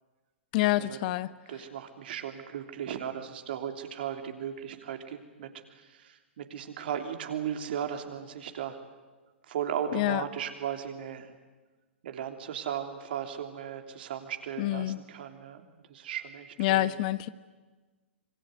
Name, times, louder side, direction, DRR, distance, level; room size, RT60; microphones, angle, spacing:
voice 1, 0.5-1.3 9.9-10.2 14.6-15.0 16.6-17.3, left 16 dB, 40° left, 16 dB, 0.9 m, -27 dB
voice 2, 1.5-8.8 9.5-11.3 12.0-16.9, right 9 dB, 55° right, 6 dB, 3.3 m, -36 dB
26.0 x 23.5 x 9.5 m, 1.3 s
figure-of-eight pair, 110°, 6 cm